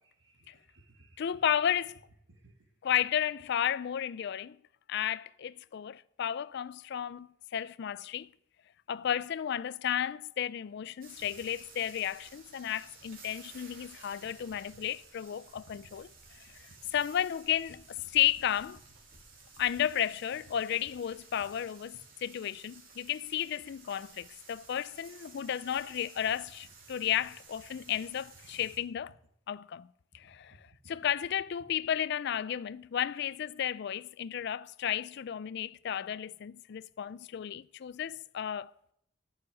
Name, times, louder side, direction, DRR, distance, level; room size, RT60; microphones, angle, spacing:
voice 1, 0.0-1.4 2.3-2.7 11.2-11.3 14.5-14.8 15.7-15.9 16.2-16.3 16.7-16.8 21.5-21.6 22.1-22.2 24.1-24.3 25.3-25.5 30.2-30.9 38.6-38.7, right 1 dB, 65° right, 1.8 m, -61 dB
voice 2, 1.2-2.0 2.8-4.6 4.9-8.3 8.9-16.1 16.3-18.8 19.6-29.1 29.5-29.9 30.1-38.7, left 10 dB, 55° left, 0.3 m, -33 dB
sound 1, 11.0-28.8, right 4 dB, 45° right, 2.9 m, -55 dB
9.6 x 7.2 x 9.3 m
head